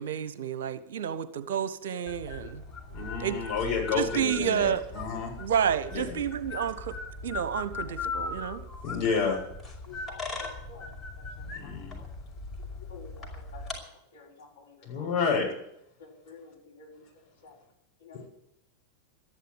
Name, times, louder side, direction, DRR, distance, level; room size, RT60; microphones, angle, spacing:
voice 1, 0.0-2.6 3.2-3.4 3.9-4.8 5.4-6.9 7.2-8.6, right 8 dB, 60° right, 12 dB, 1.2 m, -30 dB
sound 1, 2.1-13.8, left 3 dB, 15° left, 5.6 m, -39 dB
voice 2, 2.9-5.3 5.9-6.2 8.8-9.4 11.5-11.9 14.9-15.5, left 5 dB, 40° left, -2 dB, 7.5 m, -29 dB
voice 3, 9.9-12.0 12.6-13.7 14.1-15.1 16.0-17.0 17.4-17.6 18.0-18.3, left 5 dB, 65° left, -3 dB, 5.7 m, -51 dB
13.5 x 11.0 x 8.9 m, 0.77 s
figure-of-eight pair, 90°, 0 cm